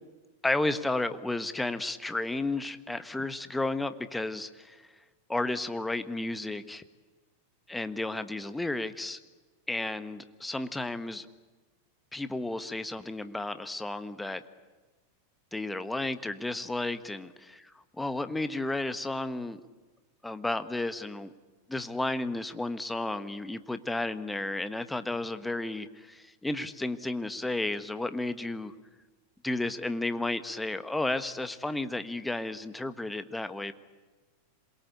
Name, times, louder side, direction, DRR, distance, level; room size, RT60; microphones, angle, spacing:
voice 1, 0.4-4.8 5.3-6.8 7.7-9.2 9.7-11.3 12.1-14.4 15.5-17.5 18.0-19.6 20.2-21.3 21.7-28.7 29.4-33.7, left 2 dB, 5° left, 11 dB, 1.3 m, -32 dB
27.0 x 22.5 x 8.5 m, 1.3 s
figure-of-eight pair, 90°, 0 cm